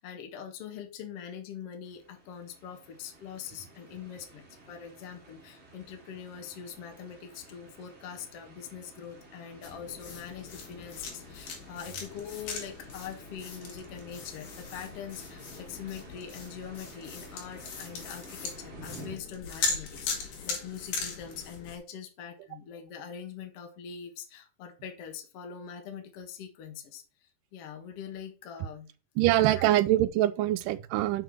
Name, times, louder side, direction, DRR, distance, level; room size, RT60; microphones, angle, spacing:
voice 1, 0.0-27.0 27.5-28.9 29.5-29.6, left 8 dB, 55° left, 2.1 m, -43 dB
sound 1, 1.8-19.2, right 2 dB, 30° right, 1.4 m, -52 dB
sound 2, 9.6-21.8, left 5 dB, 80° left, 3.7 m, -39 dB
voice 2, 29.2-31.2, right 14 dB, 85° right, 2.2 m, -24 dB
6.6 x 6.0 x 6.0 m
omnidirectional pair, 3.8 m